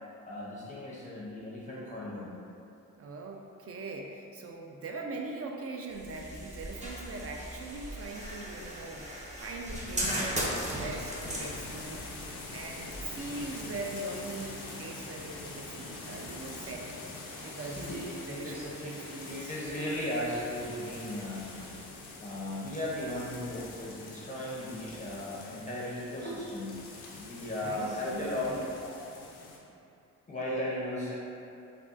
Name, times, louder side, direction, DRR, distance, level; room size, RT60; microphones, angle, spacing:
voice 1, 0.3-2.3 17.4-19.0 19.2-21.6 22.2-26.8 27.2-28.4 30.3-31.2, left 1 dB, 20° left, -7 dB, 0.6 m, -36 dB
voice 2, 3.0-9.1 9.4-12.1 12.5-16.9 17.4-17.9 18.3-19.6 27.6-28.6, right 2 dB, 40° right, 1 dB, 0.4 m, -41 dB
sound 1, 5.9-13.8, equal, 20° right, 0.8 m, -37 dB
sound 2, 6.7-21.8, equal, 90° right, 1.2 m, -52 dB
sound 3, 10.9-29.6, left 3 dB, 85° left, 0.6 m, -45 dB
3.7 x 2.2 x 2.4 m, 2.7 s
supercardioid pair, 50°, 38 cm